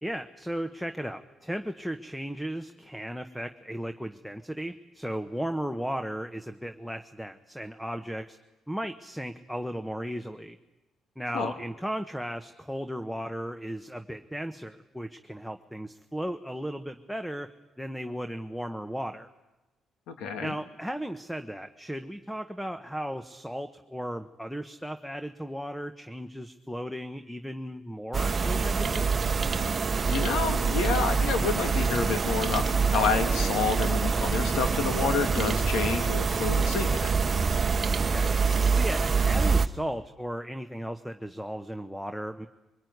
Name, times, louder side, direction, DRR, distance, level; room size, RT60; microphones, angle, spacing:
voice 1, 0.0-8.4 8.7-10.6 11.2-17.5 17.8-19.3 20.4-29.1 38.0-38.3 38.7-42.5, equal, ahead, 9 dB, 1.1 m, -35 dB
voice 2, 20.1-20.5 30.1-37.1, left 5 dB, 90° left, 6 dB, 2.6 m, -29 dB
sound 1, 28.1-39.7, right 5 dB, 35° right, 1.0 m, -25 dB
23.0 x 21.0 x 9.5 m, 1.1 s
cardioid pair, 90°, 0 cm